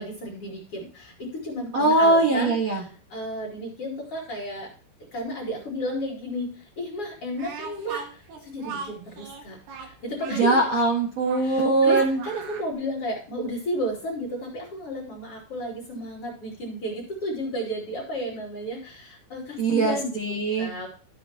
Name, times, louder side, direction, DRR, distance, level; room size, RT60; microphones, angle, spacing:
voice 1, 0.0-4.7 5.1-10.7 11.4-20.2 20.6-20.9, equal, 40° left, -2 dB, 2.9 m, -33 dB
voice 2, 1.7-2.8 10.3-12.2 19.6-20.7, right 2 dB, 55° right, -2 dB, 2.1 m, -21 dB
Speech, 7.4-12.7, right 5 dB, 70° right, 3.3 m, -39 dB
12.5 x 7.2 x 2.8 m, 0.40 s
omnidirectional pair, 5.0 m